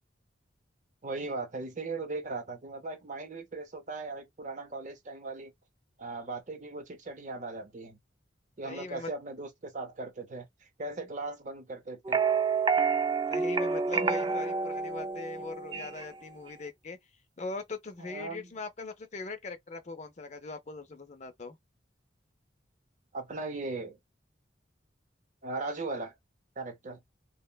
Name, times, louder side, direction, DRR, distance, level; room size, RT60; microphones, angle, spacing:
voice 1, 1.0-5.5 6.0-8.0 8.6-12.2 14.0-14.3 18.0-18.5 23.1-24.0 25.4-26.1 26.6-27.0, right 3 dB, 40° right, 0.7 m, -38 dB
voice 2, 8.6-9.1 13.3-17.0 17.4-21.6, left 3 dB, 40° left, 0.5 m, -41 dB
sound 1, 12.1-16.1, right 5 dB, 25° right, 0.3 m, -28 dB
3.0 x 2.1 x 2.2 m
head